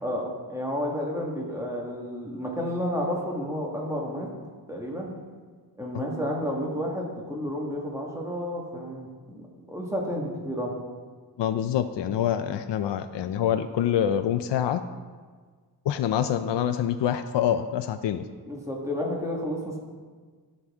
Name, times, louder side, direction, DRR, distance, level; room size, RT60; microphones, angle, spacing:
voice 1, 0.0-4.3 4.7-5.1 5.8-10.7 18.4-19.8, equal, 5° right, -2 dB, 1.6 m, -31 dB
voice 2, 11.4-14.8 15.9-18.2, left 9 dB, 80° left, 9 dB, 0.6 m, -26 dB
12.5 x 7.8 x 3.6 m, 1.5 s
wide cardioid pair, 150°, 42 cm